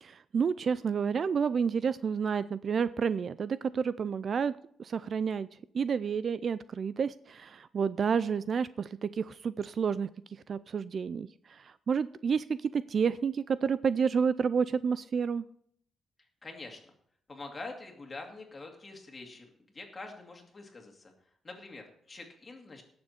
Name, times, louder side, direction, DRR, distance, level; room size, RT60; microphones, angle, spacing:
voice 1, 0.0-4.5 4.8-5.5 5.7-10.1 10.5-15.5, right 6 dB, 45° right, 16 dB, 0.3 m, -30 dB
voice 2, 16.4-16.8 17.3-21.1 21.4-22.8, left 3 dB, 25° left, 2 dB, 2.4 m, -45 dB
18.0 x 7.0 x 4.3 m, 0.67 s
cardioid pair, 135°, 0 cm